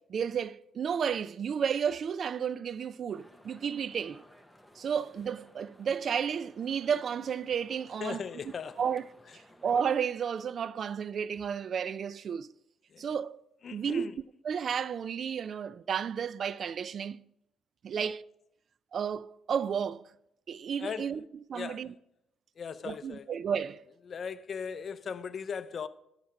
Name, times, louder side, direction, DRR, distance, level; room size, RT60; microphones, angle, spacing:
voice 1, 0.0-4.2 4.8-8.2 8.8-9.0 9.3-12.5 13.0-13.4 13.7-14.1 14.4-17.2 17.8-18.2 18.9-20.0 20.5-21.2 21.5-21.9 22.9-23.8, right 7 dB, 55° right, 0.3 m, -32 dB
sound 1, 3.1-10.0, equal, ahead, 0.8 m, -57 dB
voice 2, 8.0-8.9 9.3-9.4 12.9-13.1 13.6-14.2 17.9-18.1 20.8-21.2 21.5-21.9 22.6-23.3 24.0-25.9, left 6 dB, 50° left, 0.6 m, -39 dB
11.5 x 6.0 x 5.7 m
cardioid pair, 90°, 0 cm